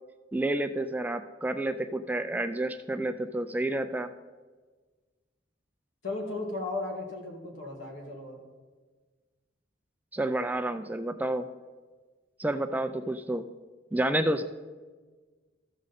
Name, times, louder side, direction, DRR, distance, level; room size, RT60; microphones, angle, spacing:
voice 1, 0.3-4.1 10.1-11.5 12.4-13.5 13.9-14.4, right 1 dB, 10° right, 8 dB, 0.3 m, -29 dB
voice 2, 6.0-8.4, left 2 dB, 85° left, 1 dB, 2.0 m, -35 dB
14.0 x 6.3 x 4.1 m, 1.4 s
head